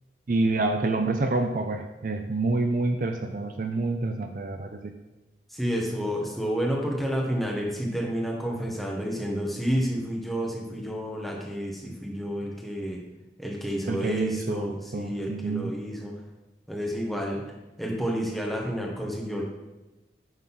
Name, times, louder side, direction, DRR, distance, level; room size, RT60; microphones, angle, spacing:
voice 1, 0.3-4.9 13.9-15.7, right 3 dB, 45° right, 5 dB, 0.5 m, -27 dB
voice 2, 5.5-13.0 13.4-16.1 16.7-17.4 17.8-19.4, equal, ahead, -1 dB, 1.3 m, -30 dB
9.6 x 3.8 x 5.9 m, 1.0 s
head